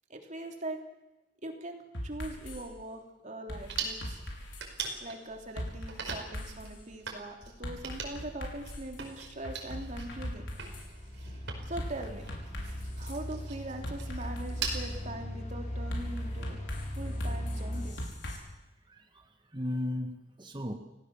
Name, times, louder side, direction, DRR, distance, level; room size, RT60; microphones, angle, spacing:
voice 1, 0.1-0.8 1.4-4.2 5.0-10.5 11.4-12.2 13.0-16.6 16.9-18.1, right 1 dB, 40° right, 3 dB, 3.3 m, -41 dB
sound 1, 1.9-2.6 3.5-4.9 5.6-6.7 7.6-8.9 9.4-10.9 11.8-13.2 13.8-15.0 15.9-18.4, left 1 dB, 70° left, 5.7 m, -40 dB
sound 2, 3.7-14.9, right 5 dB, 70° right, 5.1 m, -42 dB
sound 3, 8.3-17.9, equal, 40° left, 5.7 m, -39 dB
voice 2, 18.9-20.7, left 1 dB, 25° right, 4 dB, 1.8 m, -36 dB
28.5 x 17.5 x 7.2 m, 1.0 s
head